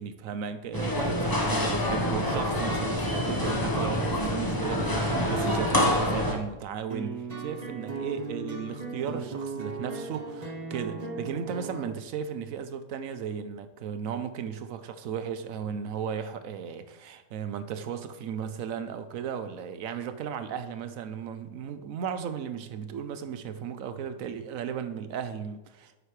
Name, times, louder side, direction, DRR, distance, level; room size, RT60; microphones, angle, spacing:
voice 1, 0.0-26.0, right 7 dB, 70° right, 1.1 m, -35 dB
sound 1, 0.7-6.3, equal, 15° left, 1.2 m, -26 dB
sound 2, 6.9-11.9, right 4 dB, 30° right, 1.0 m, -37 dB
10.0 x 7.9 x 3.3 m
omnidirectional pair, 1.5 m